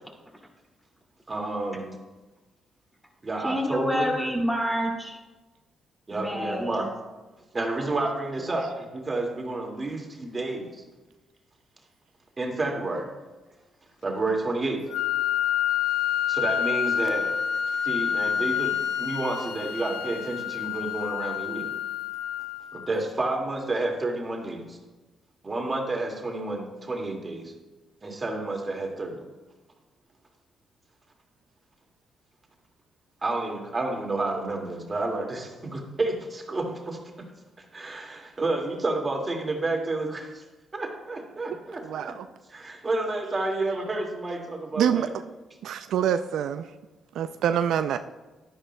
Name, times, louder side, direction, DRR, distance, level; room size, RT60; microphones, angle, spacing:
voice 1, 1.3-1.9 3.2-4.1 6.1-6.9 7.5-10.8 12.4-13.1 14.0-14.8 16.3-17.3 17.8-21.7 22.7-24.8 25.4-27.5 28.0-29.2 33.2-37.3 37.6-40.4 40.7-42.1 42.5-45.1, right 2 dB, 30° right, 1 dB, 2.0 m, -30 dB
voice 2, 3.4-5.2 6.1-6.9 8.4-8.7, equal, 5° left, 0 dB, 2.3 m, -28 dB
Wind instrument woodwind instrument, 14.9-22.9, left 9 dB, 80° left, 0.4 m, -28 dB
voice 3, 41.8-42.3 44.8-45.1 45.6-46.7 47.1-48.0, right 9 dB, 80° right, 10 dB, 0.3 m, -26 dB
11.5 x 10.0 x 2.2 m, 1.2 s
supercardioid pair, 70°, 0 cm